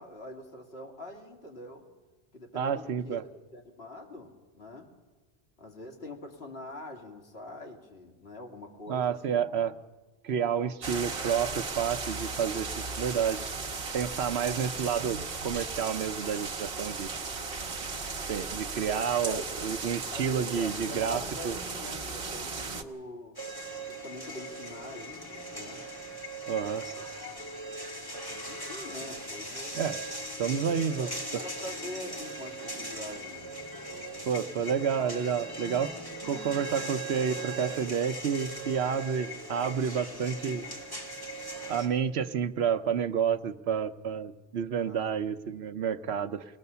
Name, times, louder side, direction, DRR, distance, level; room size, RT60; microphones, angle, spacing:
voice 1, 0.0-1.9 2.3-4.9 5.6-9.5 14.4-14.7 18.9-19.6 20.1-23.4 23.9-25.8 27.0-27.1 28.3-29.8 31.0-33.5 33.9-34.3 40.4-40.7 44.7-45.1, left 1 dB, 65° left, 1 dB, 2.6 m, -44 dB
voice 2, 2.5-3.2 8.9-9.8 10.2-13.5 13.9-17.1 18.3-21.6 26.5-26.9 29.7-30.0 30.4-31.4 34.3-35.9 36.2-40.6 41.7-46.4, right 7 dB, 70° right, 10 dB, 1.1 m, -30 dB
sound 1, 10.8-22.8, right 4 dB, 55° right, 1.4 m, -36 dB
sound 2, 23.4-41.9, right 1 dB, 20° left, 2.5 m, -39 dB
23.5 x 18.5 x 6.9 m, 1.3 s
omnidirectional pair, 1.1 m